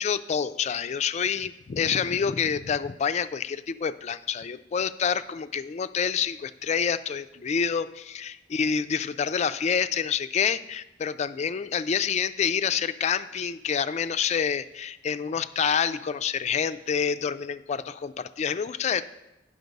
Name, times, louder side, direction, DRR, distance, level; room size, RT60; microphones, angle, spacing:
voice 1, 0.0-19.0, left 7 dB, 40° left, 13 dB, 0.3 m, -27 dB
9.2 x 6.4 x 5.3 m, 0.94 s
head